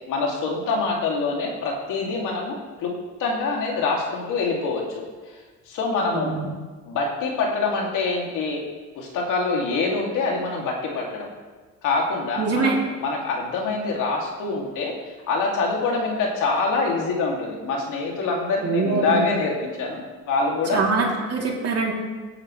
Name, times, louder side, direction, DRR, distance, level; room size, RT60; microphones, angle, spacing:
voice 1, 0.1-2.9 3.2-5.4 5.7-6.3 6.8-8.6 9.0-11.3 11.8-12.7 13.0-14.9 15.3-20.8, left 3 dB, 90° left, -1 dB, 2.8 m, -25 dB
voice 2, 6.1-6.5 12.4-12.8 18.6-19.3 20.7-21.9, right 4 dB, 55° right, -2 dB, 3.3 m, -23 dB
17.5 x 9.9 x 3.3 m, 1.3 s
cardioid pair, 90°, 30 cm